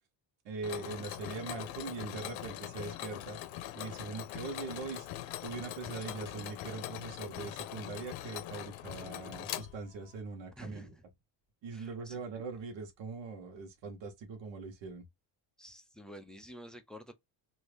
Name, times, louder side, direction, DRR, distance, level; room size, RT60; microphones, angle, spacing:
voice 1, 0.4-3.4 3.7-5.1 5.4-10.9 11.6-15.0, right 4 dB, 70° right, 1.2 m, -41 dB
Mechanisms, 0.6-10.2, left 13 dB, 80° left, 0.7 m, -42 dB
voice 2, 10.6-11.0 11.7-12.2 15.6-17.1, equal, ahead, 0.4 m, -50 dB
2.8 x 2.7 x 3.2 m
cardioid pair, 145°, 45 cm